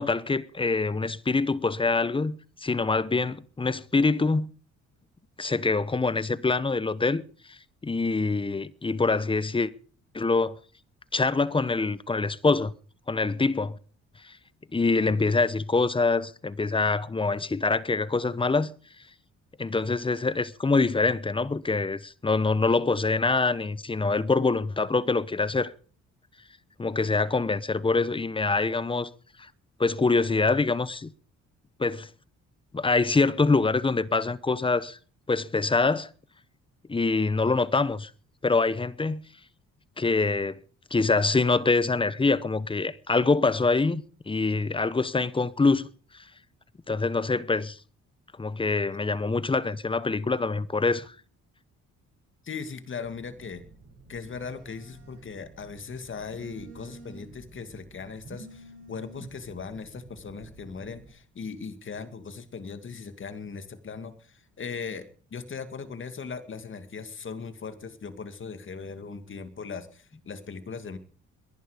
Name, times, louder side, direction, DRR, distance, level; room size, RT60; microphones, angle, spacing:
voice 1, 0.0-4.5 5.4-7.2 7.5-7.6 7.8-9.7 10.1-10.6 11.1-12.7 13.1-13.8 14.2-14.3 14.7-18.7 19.6-25.7 26.8-29.1 29.4-29.5 29.8-31.1 31.8-32.1 32.7-35.0 35.3-36.1 36.9-38.1 38.4-39.2 40.0-40.6 40.9-45.9 46.1-46.2 46.9-47.8 48.4-51.1, left 3 dB, 15° left, 0.9 m, -25 dB
voice 2, 52.4-53.6 54.1-65.1 65.3-71.0, left 5 dB, 40° left, 2.3 m, -39 dB
Telephone, 53.0-61.1, right 2 dB, 50° right, 6.8 m, -49 dB
20.5 x 11.0 x 5.1 m
cardioid pair, 90°, 30 cm